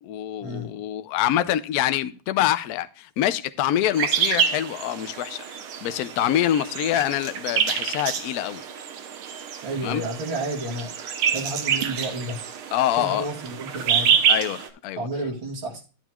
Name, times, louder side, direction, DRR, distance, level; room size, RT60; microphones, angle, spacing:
voice 1, 0.0-5.4 5.8-8.6 9.8-10.0 12.7-13.3 14.3-15.1, left 12 dB, 75° left, 0.8 m, -25 dB
sound 1, 4.0-14.7, right 7 dB, 85° right, 2.0 m, -27 dB
voice 2, 9.6-10.9 11.3-12.4 13.0-14.2 15.0-15.8, right 1 dB, 65° right, 3.4 m, -31 dB
12.0 x 9.0 x 2.3 m
omnidirectional pair, 2.3 m